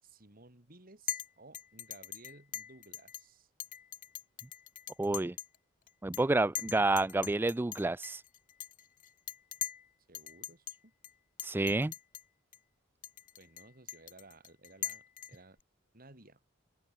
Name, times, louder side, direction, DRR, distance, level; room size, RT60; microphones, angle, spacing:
voice 1, 0.0-3.5 10.1-10.9 13.4-15.0 15.3-15.6 15.9-16.4, right 2 dB, 45° right, 4.5 m, -57 dB
Chink clink, 1.1-1.3 1.5-3.2 3.6-5.6 5.9-6.2 6.5-9.9 10.1-10.8 11.0-11.1 11.4-12.2 12.5-12.6 13.0-15.6, left 12 dB, 40° left, 1.7 m, -41 dB
voice 2, 5.0-5.3 6.0-8.2 11.4-11.9, right 2 dB, 10° right, 0.3 m, -29 dB
open air
head